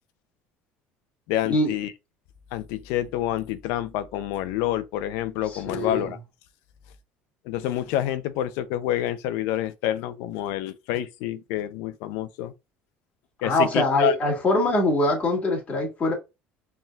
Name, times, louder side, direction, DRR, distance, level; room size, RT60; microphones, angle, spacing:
voice 1, 1.3-1.9 2.5-6.2 7.5-12.5 13.4-14.1, left 12 dB, 85° left, 0.5 m, -28 dB
voice 2, 5.5-6.1 13.4-16.1, left 1 dB, 30° left, 2.2 m, -23 dB
4.2 x 3.6 x 2.4 m
cardioid pair, 120°, 5 cm